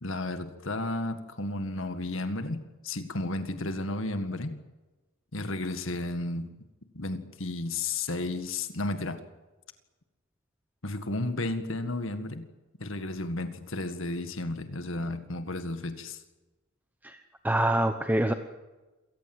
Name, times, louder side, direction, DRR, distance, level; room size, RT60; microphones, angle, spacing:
voice 1, 0.0-4.6 5.3-6.5 6.9-9.2 10.8-12.5 12.8-16.2, left 2 dB, 70° left, 2.0 m, -33 dB
voice 2, 17.0-18.3, right 1 dB, 10° right, 1.1 m, -26 dB
27.5 x 18.5 x 8.0 m
head